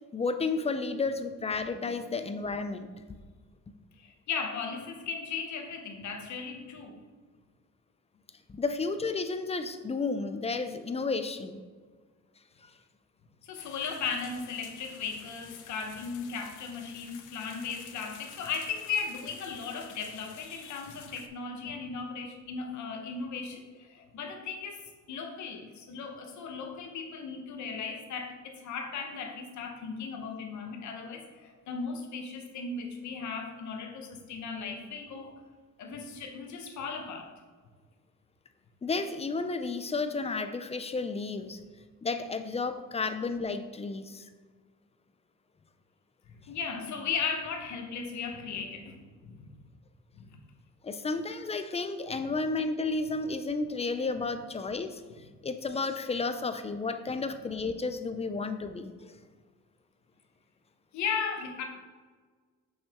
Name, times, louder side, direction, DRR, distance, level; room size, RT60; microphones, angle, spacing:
voice 1, 0.1-2.9 8.5-11.6 38.8-41.6 42.0-44.3 50.8-55.0 55.4-59.2, left 3 dB, 20° left, 9 dB, 0.4 m, -32 dB
voice 2, 4.0-7.0 13.4-24.8 25.1-35.4 35.8-37.3 46.5-49.5 50.1-50.4 60.9-61.6, left 5 dB, 70° left, 4 dB, 1.0 m, -36 dB
sound 1, 13.5-21.3, left 10 dB, 85° left, 0.6 m, -51 dB
5.7 x 5.6 x 3.5 m, 1.5 s
cardioid pair, 90°, 30 cm